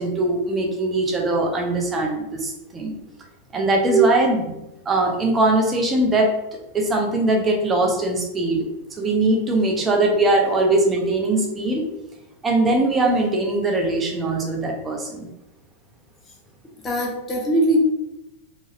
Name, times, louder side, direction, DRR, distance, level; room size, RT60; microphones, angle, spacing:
voice 1, 0.0-3.0 3.5-4.4 4.9-8.6 9.0-11.8 12.4-15.3, right 2 dB, 20° right, 1 dB, 0.8 m, -21 dB
voice 2, 16.8-17.8, right 2 dB, 15° left, -2 dB, 0.8 m, -20 dB
3.8 x 3.1 x 2.5 m, 0.92 s
figure-of-eight pair, 90°, 0 cm